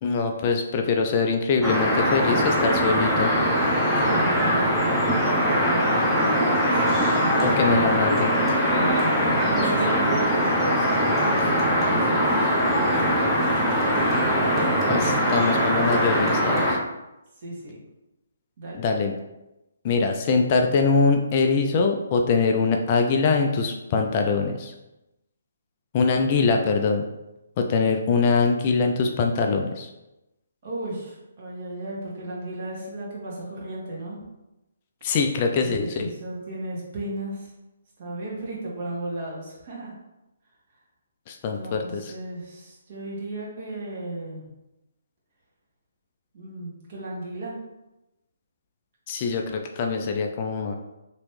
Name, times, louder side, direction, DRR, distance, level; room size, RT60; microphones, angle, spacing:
voice 1, 0.0-3.3 7.4-8.3 14.9-16.8 18.8-19.1 19.8-24.7 25.9-27.0 27.6-29.9 35.0-36.1 41.3-42.1 49.1-50.7, left 4 dB, 35° left, 3 dB, 0.4 m, -23 dB
sound 1, 1.6-16.8, equal, ahead, 0.8 m, -22 dB
voice 2, 3.5-7.8 8.4-14.2 14.5-14.8 17.4-17.8 18.6-18.8 30.6-34.2 35.6-37.5 38.0-39.9 41.5-44.4 46.3-47.6, right 2 dB, 45° right, -4 dB, 1.4 m, -35 dB
3.0 x 2.9 x 3.2 m, 0.96 s
figure-of-eight pair, 145°, 0 cm